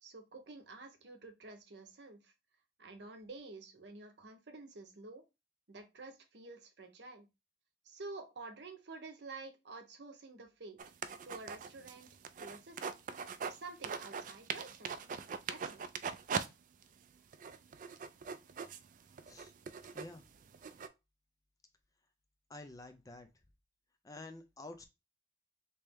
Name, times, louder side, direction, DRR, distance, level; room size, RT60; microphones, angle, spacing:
voice 1, 0.0-2.3 2.8-5.2 5.7-7.3 7.8-10.8 11.2-12.1 12.4-13.0 13.4-15.0 15.5-15.8, right 3 dB, 75° right, 6 dB, 0.8 m, -50 dB
sound 1, 10.8-13.6 13.8-16.5 16.8-16.9 17.3-20.9, right 6 dB, 50° right, 0.3 m, -41 dB
voice 2, 22.5-23.3 24.0-24.8, left 2 dB, 20° left, 6 dB, 0.5 m, -49 dB
3.2 x 2.9 x 3.4 m, 0.25 s
head